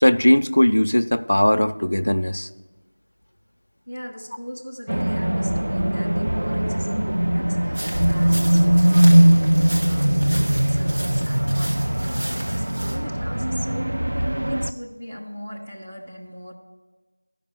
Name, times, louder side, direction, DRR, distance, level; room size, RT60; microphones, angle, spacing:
voice 1, 0.0-2.5, left 1 dB, 50° left, 11 dB, 0.4 m, -18 dB
voice 2, 3.9-16.5, equal, 5° right, -6 dB, 0.7 m, -39 dB
sound 1, 4.9-14.7, right 1 dB, 45° right, 0.4 m, -20 dB
sound 2, 7.7-13.0, equal, 25° right, 1.2 m, -34 dB
11.0 x 5.4 x 6.6 m, 1.3 s
figure-of-eight pair, 175°, 0 cm